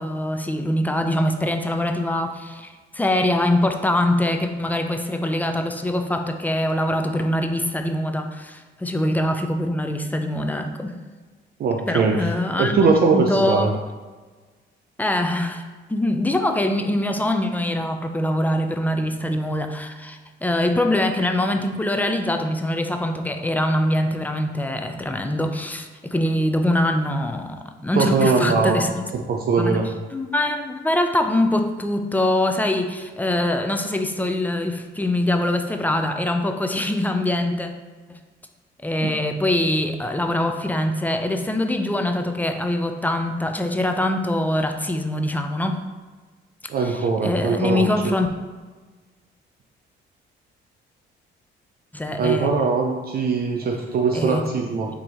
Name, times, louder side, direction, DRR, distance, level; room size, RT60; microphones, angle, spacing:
voice 1, 0.0-11.0 11.9-13.7 15.0-29.0 29.6-29.8 30.1-37.7 38.1-38.2 38.8-45.9 46.8-48.3 51.9-52.5 54.1-54.4, left 1 dB, 10° left, 5 dB, 0.3 m, -23 dB
voice 2, 11.6-12.3 12.6-13.7 27.9-28.8 29.3-29.9 39.0-39.1 46.7-47.9 52.2-54.9, right 4 dB, 50° right, 1 dB, 0.4 m, -21 dB
3.9 x 2.8 x 3.7 m, 1.3 s
cardioid pair, 90°, 20 cm